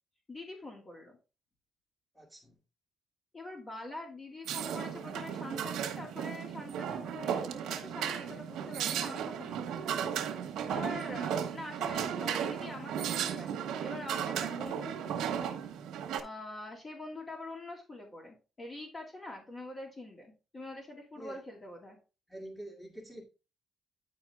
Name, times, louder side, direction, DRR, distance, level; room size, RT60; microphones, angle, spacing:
voice 1, 0.3-1.2 3.3-9.7 10.1-15.6 16.2-22.0, left 2 dB, 35° left, 2.3 m, -45 dB
voice 2, 2.1-2.6 21.2-21.4 22.3-23.2, right 1 dB, 10° left, 1.9 m, -46 dB
sound 1, 4.4-16.2, right 8 dB, 85° right, 1.1 m, -35 dB
10.0 x 4.3 x 3.5 m
cardioid pair, 90°, 0 cm